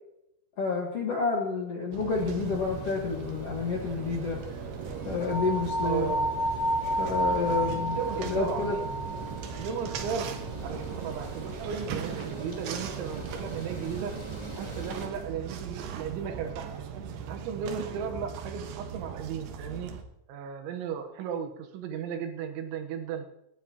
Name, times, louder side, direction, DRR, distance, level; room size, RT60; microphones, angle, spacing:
voice 1, 0.6-4.4 5.0-6.1 6.9-8.8, left 4 dB, 75° left, -1 dB, 1.4 m, -29 dB
sound 1, 1.9-20.0, right 8 dB, 70° right, 3.0 m, -39 dB
sound 2, 2.1-15.1, equal, 20° right, 1.1 m, -42 dB
sound 3, 5.3-10.4, equal, 20° left, 1.7 m, -31 dB
voice 2, 5.8-6.3 8.0-9.0 9.5-10.3 10.6-14.2 14.6-16.7 17.3-19.9 20.3-23.3, right 7 dB, 90° right, 5 dB, 3.5 m, -35 dB
28.0 x 9.9 x 2.9 m, 0.84 s
omnidirectional pair, 5.2 m